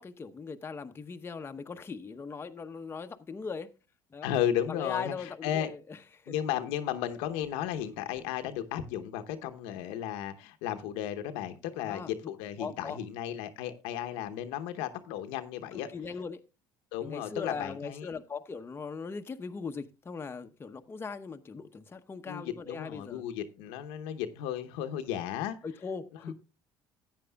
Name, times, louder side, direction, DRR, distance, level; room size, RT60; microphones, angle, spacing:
voice 1, 0.0-3.7 4.1-4.3 4.7-6.0 6.2-6.3 11.8-12.1 12.6-13.0 15.7-16.4 17.0-23.2 25.6-26.3, left 5 dB, 25° left, 0.8 m, -39 dB
voice 2, 4.2-5.7 6.3-15.9 16.9-18.1 22.3-25.6 26.2-26.3, left 10 dB, 85° left, 0.9 m, -34 dB
14.5 x 9.1 x 2.3 m
supercardioid pair, 90°, 9 cm